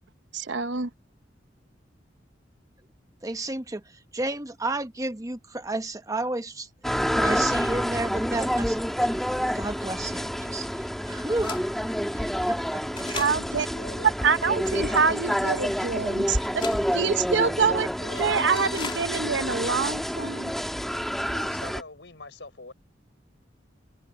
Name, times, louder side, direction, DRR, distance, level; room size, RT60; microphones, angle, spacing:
voice 1, 0.3-0.9 13.1-13.7 14.2-16.6 16.9-17.9 18.2-20.5, right 5 dB, 75° right, 0.9 m, -26 dB
voice 2, 3.2-6.7 7.1-9.1 9.5-11.5 12.1-13.1, right 2 dB, 20° right, 1.1 m, -32 dB
sound 1, 6.8-21.8, equal, ahead, 1.9 m, -28 dB
sound 2, 9.8-9.9 10.6-10.7 11.4-11.7 12.4-12.5 12.9-13.4 14.0-14.1 14.6-15.2 15.8-15.9 16.4-16.8 17.4-17.6 18.0-18.3 18.5-19.0 19.3-19.4 19.6-19.7, left 4 dB, 30° left, 2.5 m, -37 dB
voice 3, 13.7-14.1 14.5-14.8 18.0-18.4 21.3-22.7, left 3 dB, 70° left, 6.2 m, -43 dB
head